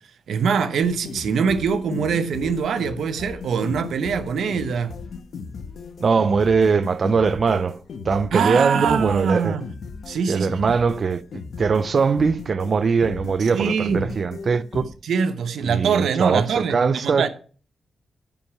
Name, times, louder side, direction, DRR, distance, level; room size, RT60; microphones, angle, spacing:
voice 1, 0.3-4.9 8.3-9.7 10.1-10.7 13.5-14.1 15.0-17.3, right 6 dB, 85° right, 0.9 m, -23 dB
sound 1, 0.8-14.9, left 4 dB, 65° left, 1.2 m, -36 dB
voice 2, 6.0-7.8 8.1-9.6 10.3-14.9 15.6-17.3, right 5 dB, 45° right, 0.5 m, -21 dB
12.0 x 5.5 x 5.9 m
wide cardioid pair, 145°, 0 cm